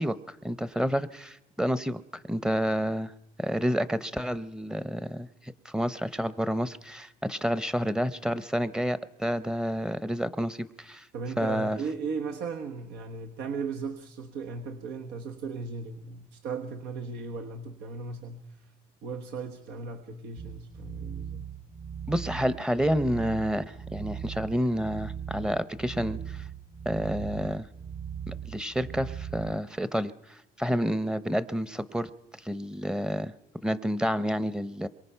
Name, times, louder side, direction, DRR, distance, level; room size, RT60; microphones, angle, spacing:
voice 1, 0.0-3.1 3.4-11.1 11.4-11.8 22.1-26.4 26.9-27.7 28.3-32.1 32.4-33.3 33.6-34.9, equal, 5° right, 15 dB, 0.7 m, -29 dB
voice 2, 11.1-18.7 19.0-21.5, right 5 dB, 90° right, 3 dB, 1.3 m, -37 dB
sound 1, 20.4-29.6, right 8 dB, 40° right, 1.0 m, -39 dB
27.0 x 23.0 x 5.6 m, 0.92 s
cardioid pair, 110°, 17 cm